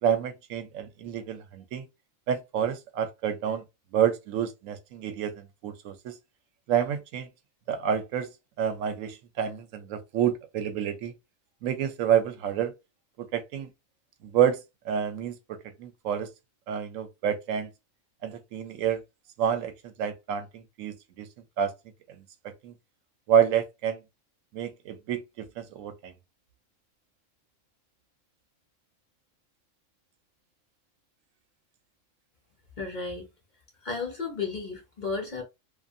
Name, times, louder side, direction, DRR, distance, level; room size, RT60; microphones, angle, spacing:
voice 1, 0.0-1.8 2.3-3.6 3.9-6.2 6.7-7.3 7.7-8.3 8.6-11.1 11.6-12.7 13.2-13.7 14.2-16.3 16.7-17.7 18.2-19.0 19.4-21.3 21.6-21.7 22.1-22.7 23.3-24.0 24.5-26.1, right 8 dB, 85° right, 1.0 m, -28 dB
voice 2, 32.8-33.3 33.8-35.4, left 4 dB, 45° left, 0.7 m, -33 dB
2.6 x 2.5 x 2.4 m
omnidirectional pair, 1.3 m